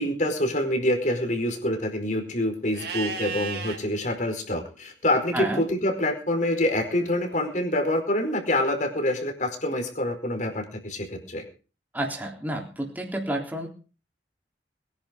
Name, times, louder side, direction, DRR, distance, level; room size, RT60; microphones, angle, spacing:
voice 1, 0.0-11.4, left 1 dB, 45° left, 4 dB, 4.8 m, -26 dB
Livestock farm animals working animals, 2.7-3.8 6.6-7.6, right 5 dB, 60° right, 3.4 m, -35 dB
voice 2, 5.3-5.6 11.9-13.7, right 1 dB, 10° right, 0 dB, 3.7 m, -30 dB
22.0 x 11.0 x 5.3 m, 0.37 s
head